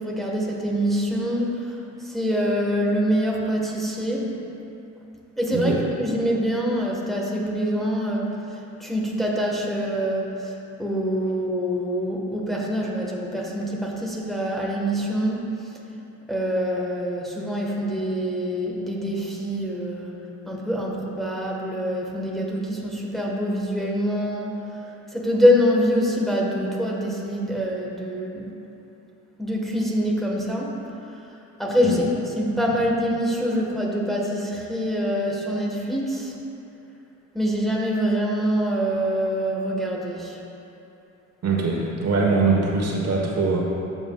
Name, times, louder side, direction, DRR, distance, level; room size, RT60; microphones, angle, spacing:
voice 1, 0.0-4.4 5.4-15.5 16.3-24.5 24.8-28.5 29.4-30.7 31.1-31.2 31.6-36.3 37.3-40.4, equal, ahead, -3 dB, 1.4 m, -25 dB
voice 2, 41.4-43.7, right 3 dB, 55° right, -1 dB, 1.4 m, -22 dB
13.0 x 7.1 x 2.4 m, 2.8 s
cardioid pair, 90°, 30 cm